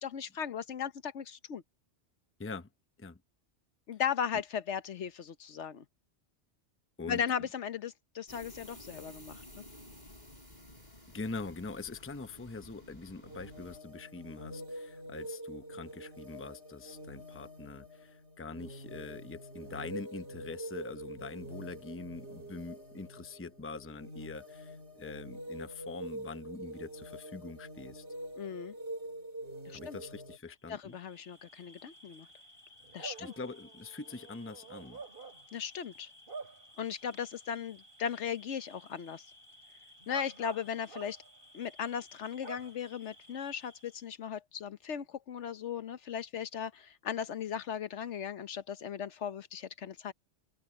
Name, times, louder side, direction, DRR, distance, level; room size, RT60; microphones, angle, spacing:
voice 1, 0.0-1.6 3.9-5.8 7.1-9.4 28.4-28.7 29.7-30.0 30.7-32.3 32.9-33.3 35.5-36.1 36.8-39.3 40.1-41.2 41.5-50.1, left 8 dB, 70° left, 1.2 m, -37 dB
sound 1, 8.3-13.8, left 1 dB, 35° left, 4.3 m, -53 dB
voice 2, 11.1-28.0 29.7-31.0 32.9-35.0, left 3 dB, 15° left, 0.7 m, -44 dB
sound 2, 13.2-30.4, equal, 60° right, 3.5 m, -45 dB
Bark / Cricket, 30.8-44.1, right 3 dB, 45° right, 5.2 m, -51 dB
omnidirectional pair, 1.3 m